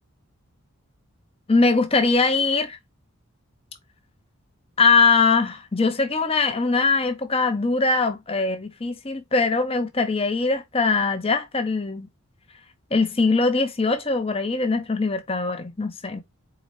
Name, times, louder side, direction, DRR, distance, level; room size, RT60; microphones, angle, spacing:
voice 1, 1.5-2.8 4.8-12.1 12.9-16.2, left 4 dB, 25° left, 0.7 m, -21 dB
4.2 x 3.9 x 3.1 m
head